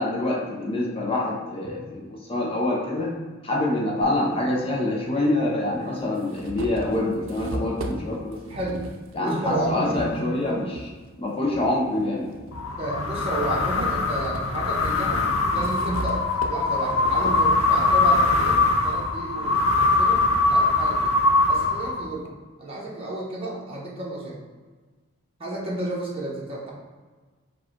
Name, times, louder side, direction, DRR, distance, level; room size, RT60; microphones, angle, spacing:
voice 1, 0.0-3.2 3.4-8.4 9.1-10.9 11.2-12.3, left 1 dB, 30° left, -2 dB, 0.6 m, -25 dB
sound 1, 4.0-4.1 5.2-5.3 5.8-10.9 11.4-12.6 13.0-19.2, right 2 dB, 75° right, 0.5 m, -38 dB
voice 2, 8.5-8.8 9.2-10.1 12.8-15.2 15.5-20.2 20.5-21.2 21.5-22.2 22.6-24.4 25.4-26.7, right 1 dB, 30° right, -5 dB, 1.1 m, -31 dB
sound 2, 12.5-22.3, left 3 dB, 90° left, 0.5 m, -22 dB
4.7 x 2.4 x 4.4 m, 1.4 s
head